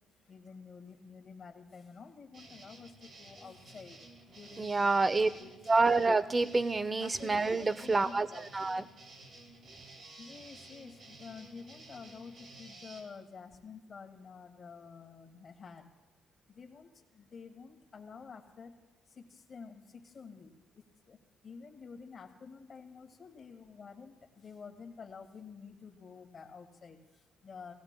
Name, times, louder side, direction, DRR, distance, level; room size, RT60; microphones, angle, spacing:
voice 1, 0.3-4.0 4.3-4.9 5.4-5.5 5.8-5.9 7.0-8.5 10.2-15.9 16.5-18.7 19.1-27.7, left 5 dB, 45° left, 3 dB, 1.7 m, -50 dB
sound 1, 2.3-13.0, right 2 dB, 60° right, 3.8 m, -53 dB
voice 2, 4.6-5.3 5.7-8.9, right 3 dB, 25° right, 15 dB, 0.6 m, -28 dB
17.5 x 17.0 x 2.2 m, 1.1 s
cardioid pair, 90°, 0 cm